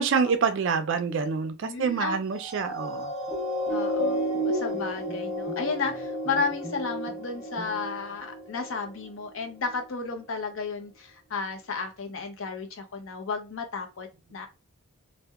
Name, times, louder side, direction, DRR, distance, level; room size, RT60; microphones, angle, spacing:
voice 1, 0.0-3.1, right 5 dB, 55° right, 0.4 m, -26 dB
voice 2, 1.6-2.2 3.7-14.5, left 4 dB, 65° left, 0.5 m, -33 dB
sound 1, 2.4-9.1 9.7-9.8, equal, 30° left, 0.9 m, -32 dB
Bowed string instrument, 3.3-8.1, equal, 10° right, 0.6 m, -46 dB
2.7 x 2.1 x 2.3 m
head